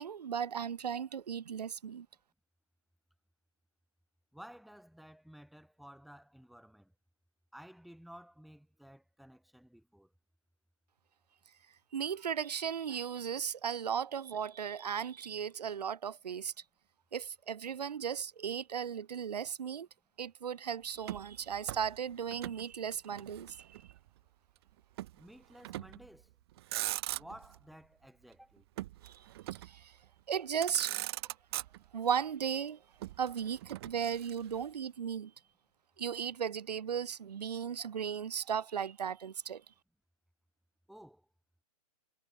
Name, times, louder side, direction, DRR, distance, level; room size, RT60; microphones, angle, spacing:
voice 1, 0.0-2.1 11.9-16.5 17.1-19.9 20.2-23.7 29.0-29.1 29.6-29.9 30.3-30.9 31.9-32.8 33.2-35.3 36.0-39.6, right 8 dB, 85° right, 1.4 m, -36 dB
voice 2, 4.3-6.9 7.5-10.1 25.1-26.3 27.1-28.6 40.9-41.3, equal, ahead, 2.6 m, -54 dB
Motor vehicle (road), 21.0-22.6 22.9-24.0 25.0-25.2 25.6-26.1 26.5-27.6 28.8-29.8 30.3-30.4 30.6-32.1 33.0-34.6, right 16 dB, 40° right, 0.5 m, -40 dB
hypercardioid pair, 145°, 20 cm